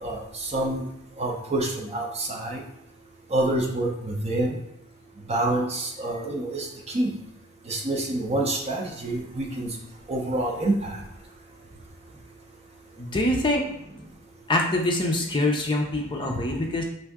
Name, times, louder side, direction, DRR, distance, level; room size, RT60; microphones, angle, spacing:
voice 1, 0.0-0.8 1.2-2.6 3.3-4.6 5.3-6.7 6.9-7.1 7.7-9.7 10.1-11.0, right 1 dB, 30° right, 0 dB, 0.6 m, -27 dB
voice 2, 13.0-13.6 14.5-16.8, left 1 dB, 20° left, 0 dB, 0.5 m, -24 dB
5.6 x 2.6 x 3.5 m, 0.82 s
head